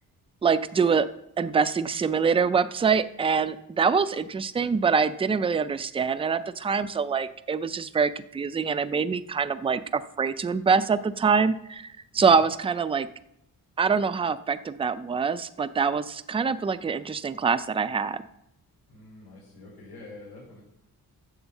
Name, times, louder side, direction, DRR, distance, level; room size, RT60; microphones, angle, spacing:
voice 1, 0.4-1.1 1.4-13.1 13.8-18.2, right 5 dB, 15° right, 12 dB, 0.3 m, -25 dB
voice 2, 12.1-12.4 18.9-20.6, left 2 dB, 90° left, -7 dB, 4.9 m, -46 dB
9.4 x 7.2 x 7.1 m, 0.81 s
wide cardioid pair, 150°, 38 cm